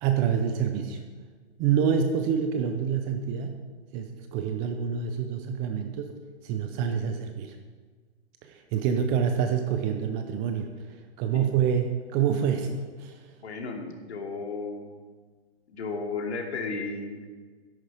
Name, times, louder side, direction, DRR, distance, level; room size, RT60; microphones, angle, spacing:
voice 1, 0.0-1.0 1.6-3.6 3.9-6.1 6.4-7.6 8.4-13.3, right 7 dB, 15° right, 6 dB, 0.4 m, -27 dB
voice 2, 13.4-14.9 15.7-17.3, left 4 dB, 75° left, 2 dB, 2.7 m, -34 dB
13.0 x 10.5 x 4.8 m, 1.5 s
hypercardioid pair, 140°, 33 cm